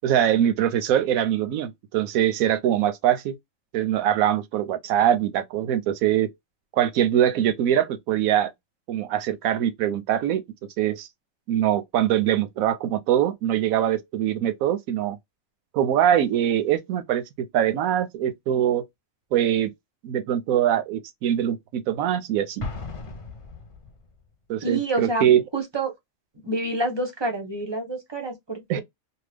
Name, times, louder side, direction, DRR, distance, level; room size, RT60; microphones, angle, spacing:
voice 1, 0.0-3.3 3.7-6.3 6.7-8.5 8.9-10.4 10.8-11.1 11.5-15.2 15.7-18.8 19.3-19.7 20.0-22.7 24.5-25.4 28.7-28.8, right 10 dB, 90° right, 1.0 m, -23 dB
Explosion, 22.6-24.2, left 3 dB, 35° left, 0.5 m, -36 dB
voice 2, 24.6-25.2 25.5-25.9 26.4-28.8, right 2 dB, 30° right, 0.5 m, -27 dB
2.8 x 2.2 x 3.2 m
omnidirectional pair, 1.4 m